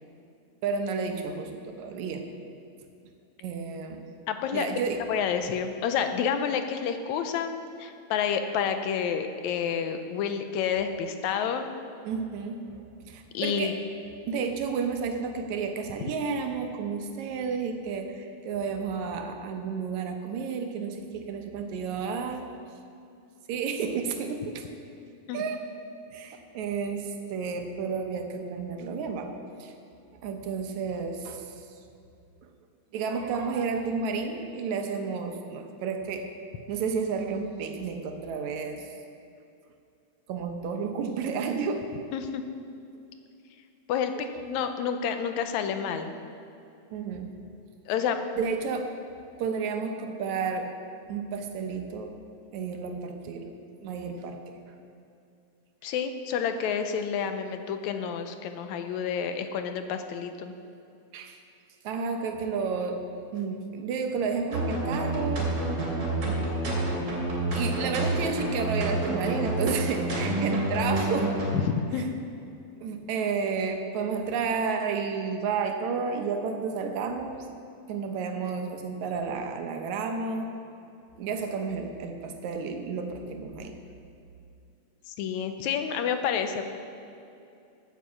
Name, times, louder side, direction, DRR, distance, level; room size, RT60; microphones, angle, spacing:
voice 1, 0.6-2.3 3.4-4.0 4.5-5.0 12.0-12.8 13.1-13.8 14.3-22.5 23.5-24.7 25.3-25.6 26.1-29.3 29.6-29.7 30.2-31.7 32.4-32.5 32.9-36.3 36.7-38.9 40.3-41.9 46.9-47.3 48.4-48.9 49.4-50.7 51.1-52.2 52.5-53.5 53.8-54.6 61.1-61.4 61.8-63.0 63.3-65.5 67.5-71.4 72.0-72.1 72.8-77.5 77.9-80.5 81.2-83.8, right 5 dB, 75° right, 5 dB, 2.2 m, -31 dB
voice 2, 4.3-4.8 5.1-11.7 13.3-13.7 25.3-25.4 42.1-42.4 43.9-46.1 47.9-48.2 55.8-60.6 71.6-72.2 85.1-86.6, left 7 dB, 80° left, 7 dB, 2.0 m, -29 dB
sound 1, 64.5-71.6, right 1 dB, 45° right, 3.2 m, -28 dB
9.3 x 8.3 x 7.2 m, 2.6 s
omnidirectional pair, 3.4 m